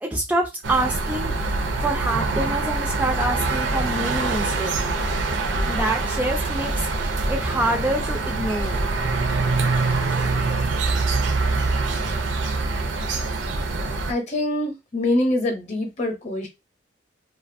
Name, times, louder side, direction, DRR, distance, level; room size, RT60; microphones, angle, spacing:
voice 1, 0.0-4.7 5.7-8.8 10.4-11.0, right 1 dB, 10° right, 0.3 m, -27 dB
sound 1, 0.6-14.1, right 3 dB, 75° right, 0.5 m, -24 dB
voice 2, 14.1-16.5, left 1 dB, 35° left, 0.7 m, -24 dB
2.5 x 2.3 x 2.5 m
head